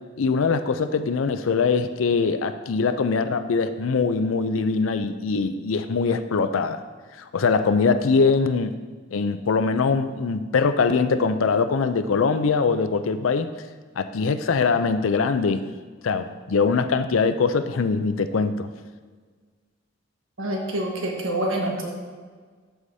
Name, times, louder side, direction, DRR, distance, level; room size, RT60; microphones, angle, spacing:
voice 1, 0.2-6.8 7.3-8.7 9.1-13.5 14.0-15.6 16.0-18.7, left 4 dB, 90° left, 10 dB, 0.5 m, -22 dB
voice 2, 20.4-21.9, right 1 dB, 90° right, 0 dB, 1.3 m, -26 dB
12.5 x 4.9 x 2.7 m, 1.5 s
head